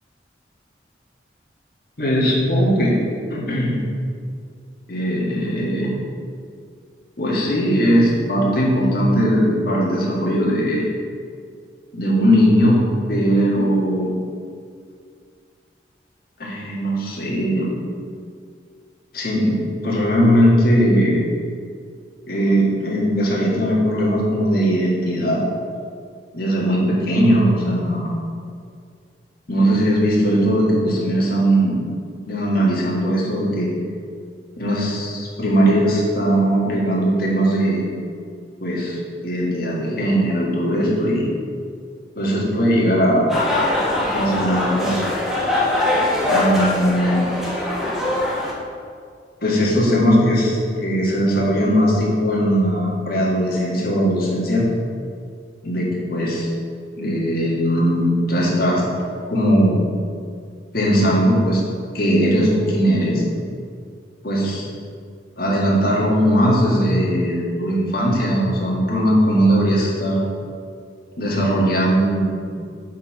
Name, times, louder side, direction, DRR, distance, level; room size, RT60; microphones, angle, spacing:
voice 1, 2.0-3.0 3.3-3.9 4.9-5.9 7.2-10.8 11.9-12.8 13.1-14.1 16.4-17.7 19.1-21.2 22.3-25.4 26.3-28.1 29.5-31.8 32.3-33.7 34.6-37.9 38.6-39.0 39.2-41.3 42.2-43.3 44.0-45.0 46.2-47.2 49.4-54.6 55.6-56.5 57.0-58.8 59.3-59.8 60.7-61.6 61.9-63.2 64.2-64.7 65.4-70.2 71.2-72.4, equal, 55° left, -4 dB, 1.8 m, -19 dB
sound 1, 43.3-48.5, left 1 dB, ahead, 1.3 m, -22 dB
7.4 x 4.5 x 5.6 m, 2.2 s
head